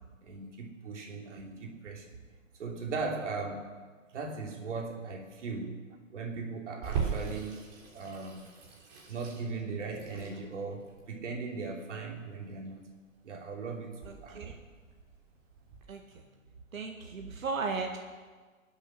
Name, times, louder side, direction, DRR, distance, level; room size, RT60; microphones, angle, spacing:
voice 1, 0.2-2.2 2.6-3.7 4.1-5.8 6.1-7.6 7.9-8.5 9.1-12.8 13.2-14.5, right 4 dB, 60° right, 1 dB, 3.3 m, -38 dB
Water tap faucet / Sink (filling or washing), 6.8-15.8, right 6 dB, 30° right, 3.4 m, -40 dB
voice 2, 14.1-14.6 15.9-16.3 16.7-18.0, right 4 dB, 85° right, 2 dB, 2.3 m, -36 dB
24.0 x 8.2 x 6.4 m, 1.5 s
hypercardioid pair, 155°, 40 cm